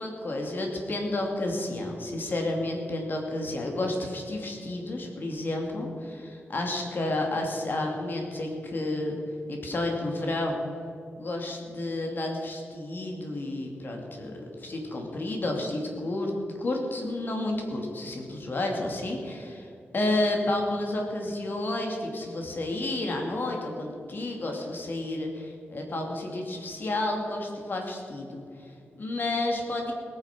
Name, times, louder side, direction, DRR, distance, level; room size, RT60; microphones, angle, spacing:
voice 1, 0.0-9.2 9.5-10.6 11.2-16.3 16.6-29.9, left 2 dB, 50° left, 1 dB, 2.6 m, -31 dB
19.0 x 9.5 x 6.2 m, 2.5 s
wide cardioid pair, 135°, 5 cm